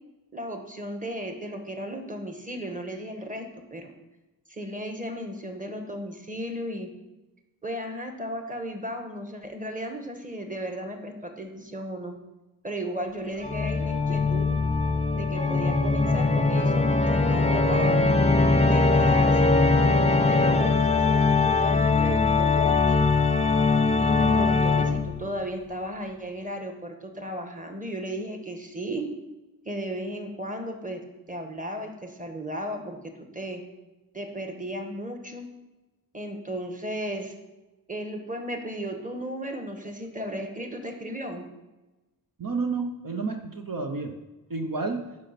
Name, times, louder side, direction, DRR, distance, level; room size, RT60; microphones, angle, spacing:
voice 1, 0.3-3.4 3.7-3.9 4.5-6.9 7.6-12.2 12.6-14.6 15.1-18.0 18.6-19.6 20.3-23.1 23.9-29.1 29.6-31.0 31.3-33.0 33.3-33.6 34.1-35.5 36.1-37.3 37.9-41.4, equal, 20° right, 5 dB, 1.5 m, -35 dB
Organ, 13.4-25.3, left 3 dB, 15° left, 0.7 m, -21 dB
voice 2, 42.4-44.1 44.5-45.1, right 4 dB, 60° right, 4 dB, 0.9 m, -30 dB
10.5 x 5.3 x 5.9 m, 1.1 s
wide cardioid pair, 65°, 37 cm